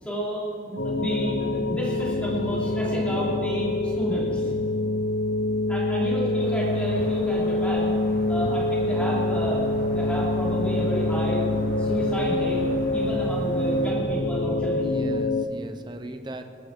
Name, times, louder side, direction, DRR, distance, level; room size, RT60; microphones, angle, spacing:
voice 1, 0.0-4.5 5.7-8.0 8.3-12.6 12.9-14.9, right 1 dB, 5° left, -7 dB, 3.2 m, -31 dB
sound 1, 0.8-15.4, left 2 dB, 75° left, 0.7 m, -25 dB
voice 2, 5.9-6.2 8.3-8.6 14.8-16.4, right 1 dB, 25° right, 7 dB, 0.7 m, -39 dB
sound 2, 6.4-13.9, left 1 dB, 55° left, 2.7 m, -43 dB
21.0 x 7.6 x 7.4 m, 2.5 s
head